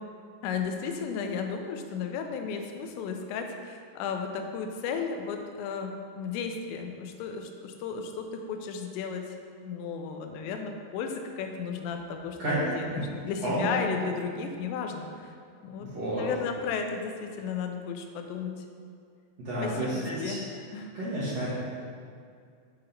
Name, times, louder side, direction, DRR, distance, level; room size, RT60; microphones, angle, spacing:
voice 1, 0.4-9.4 9.6-12.4 12.8-15.3 15.6-15.9 16.1-18.7 19.6-20.4 20.7-20.9, left 6 dB, 85° left, 4 dB, 2.9 m, -34 dB
voice 2, 12.4-13.0 13.4-13.8 15.8-16.3 19.4-20.3 20.9-21.5, right 1 dB, 75° right, -11 dB, 1.5 m, -30 dB
7.7 x 4.2 x 3.8 m, 2.3 s
omnidirectional pair, 5.0 m